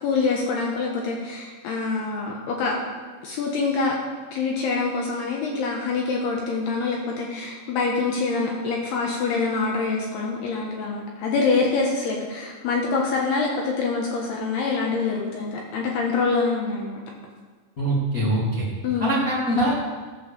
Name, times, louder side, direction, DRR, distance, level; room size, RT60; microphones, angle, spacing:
voice 1, 0.0-2.8 3.2-4.0 4.3-17.0 18.8-19.1, left 4 dB, 70° left, -1 dB, 2.7 m, -25 dB
voice 2, 17.8-18.6 19.0-19.7, right 1 dB, 90° left, -7 dB, 0.7 m, -23 dB
15.0 x 5.5 x 6.9 m, 1.4 s
omnidirectional pair, 5.7 m